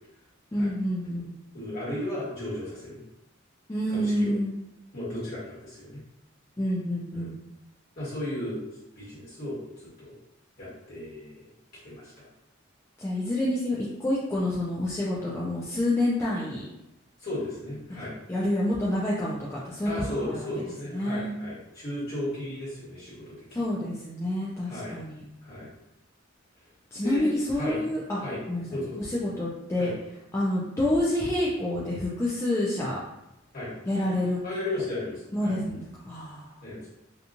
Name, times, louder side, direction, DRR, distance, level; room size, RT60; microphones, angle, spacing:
voice 1, 0.5-1.3 3.7-4.6 6.6-7.4 13.0-16.7 17.9-18.0 18.3-20.5 20.9-21.3 23.5-25.2 26.9-28.2 28.5-28.6 29.0-29.9 30.3-33.0 33.9-34.4 35.3-36.5, left 1 dB, 15° left, -7 dB, 0.3 m, -28 dB
voice 2, 1.5-3.0 3.9-4.3 4.9-6.0 7.1-7.3 8.0-8.6 8.9-10.1 10.6-11.5 11.8-12.3 17.2-18.2 19.8-23.6 24.7-25.0 25.4-25.7 27.0-27.8 28.2-29.1 29.8-29.9 33.5-33.7 34.4-35.5 36.6-36.9, left 1 dB, 50° left, -9 dB, 1.4 m, -35 dB
2.8 x 2.2 x 2.5 m, 0.88 s
head